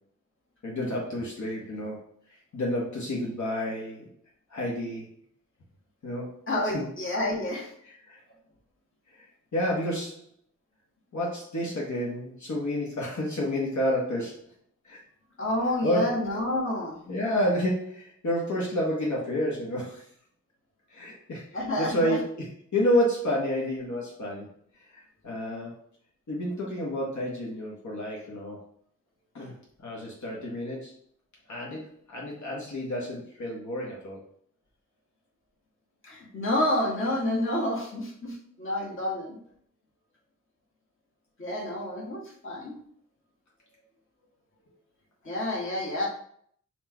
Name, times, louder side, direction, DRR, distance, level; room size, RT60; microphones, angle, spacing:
voice 1, 0.6-4.1 4.5-5.1 6.0-6.3 6.7-6.8 7.8-8.2 9.1-10.2 11.1-14.4 14.8-15.0 15.8-16.1 17.1-20.1 20.9-24.5 24.7-25.8 26.3-28.6 29.3-29.6 29.8-30.9 31.5-34.2, equal, 70° left, -3 dB, 1.1 m, -30 dB
voice 2, 6.5-7.7 15.4-17.0 21.5-22.2 36.0-39.4 41.4-42.8 45.2-46.1, left 1 dB, 40° left, -3 dB, 1.3 m, -29 dB
4.3 x 2.4 x 4.4 m, 0.63 s
wide cardioid pair, 105°, 30 cm